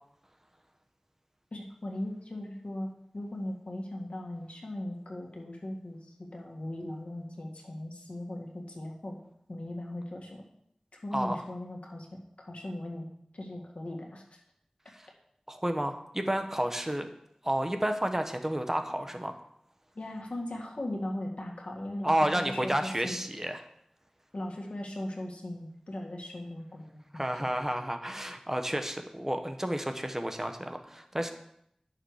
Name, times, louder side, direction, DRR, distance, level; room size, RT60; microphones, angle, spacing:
voice 1, 1.5-9.2 9.5-10.4 11.0-12.1 12.4-14.4 20.0-23.2 24.3-26.9, left 1 dB, 80° left, 0 dB, 1.8 m, -38 dB
voice 2, 11.1-11.4 14.9-15.0 15.5-17.1 17.4-19.4 22.0-23.6 27.1-31.3, right 1 dB, 20° right, 6 dB, 1.1 m, -31 dB
11.0 x 6.7 x 4.8 m, 0.74 s
wide cardioid pair, 55°, 2 cm